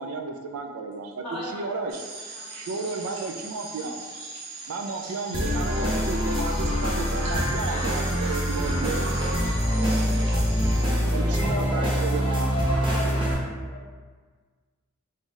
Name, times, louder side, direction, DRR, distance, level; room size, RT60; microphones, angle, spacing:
voice 1, 0.0-1.2 1.5-1.9 2.5-4.0 4.7-9.1 10.3-10.4 11.0-12.5, right 3 dB, 75° right, 5 dB, 0.4 m, -33 dB
voice 2, 1.2-2.1 2.3-3.4 7.2-11.8 12.8-13.4, equal, 5° left, -10 dB, 1.4 m, -43 dB
sound 1, 1.9-10.8, right 3 dB, 60° right, 0.9 m, -40 dB
sound 2, 5.3-13.3, equal, 20° right, 0.7 m, -25 dB
voice 3, 11.2-13.4 13.7-14.1, left 1 dB, 35° left, -2 dB, 0.3 m, -35 dB
4.0 x 3.6 x 2.4 m, 1.5 s
head